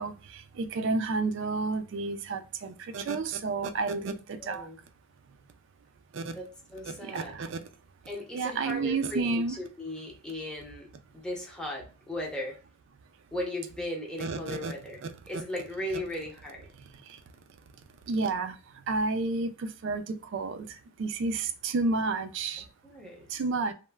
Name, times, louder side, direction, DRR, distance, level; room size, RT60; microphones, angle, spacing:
voice 1, 0.0-4.7 6.1-6.3 6.9-7.6 8.3-9.6 14.2-14.7 17.1-17.2 18.1-18.6 18.9-22.6 23.3-23.7, right 3 dB, 55° right, 0.3 m, -31 dB
voice 2, 4.4-4.8 6.3-7.3 8.1-10.9 11.1-12.5 13.3-15.0 15.3-16.6 22.8-23.4, left 1 dB, 5° left, 0.6 m, -37 dB
3.0 x 2.0 x 2.2 m
head